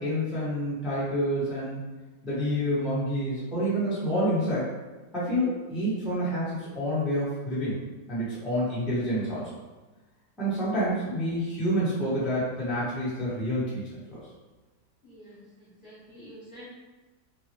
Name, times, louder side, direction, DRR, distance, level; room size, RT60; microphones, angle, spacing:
voice 1, 0.0-1.8 2.2-4.6 5.1-7.8 8.1-9.4 10.4-14.2, equal, ahead, -11 dB, 0.5 m, -28 dB
voice 2, 15.0-16.7, equal, 45° left, -12 dB, 0.8 m, -48 dB
3.6 x 2.0 x 2.8 m, 1.2 s
omnidirectional pair, 2.1 m